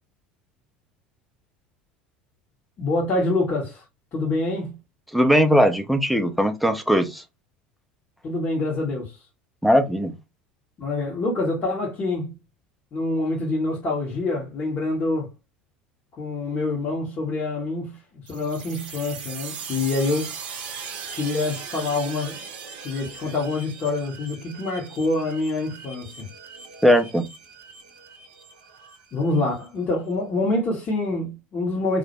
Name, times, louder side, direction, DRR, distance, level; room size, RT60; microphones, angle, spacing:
voice 1, 2.8-3.8 4.1-4.8 8.2-9.2 10.8-12.4 12.9-15.3 16.2-20.3 21.1-22.4 22.8-26.3 29.1-32.0, left 2 dB, 35° left, 0.8 m, -26 dB
voice 2, 5.1-7.2 9.6-10.1 26.8-27.2, equal, ahead, 0.4 m, -19 dB
sound 1, 18.3-29.7, right 5 dB, 65° right, 0.5 m, -39 dB
2.1 x 2.0 x 2.8 m
figure-of-eight pair, 70°, 6 cm